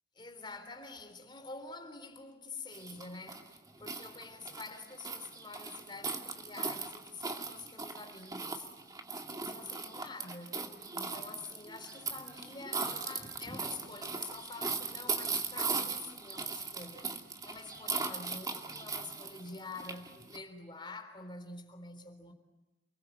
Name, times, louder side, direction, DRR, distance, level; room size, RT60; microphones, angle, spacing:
voice 1, 0.1-8.7 9.3-10.6 10.9-22.3, left 3 dB, 25° left, 3.6 m, -47 dB
sound 1, 2.7-20.4, right 4 dB, 20° right, 2.3 m, -39 dB
29.5 x 21.0 x 9.3 m
head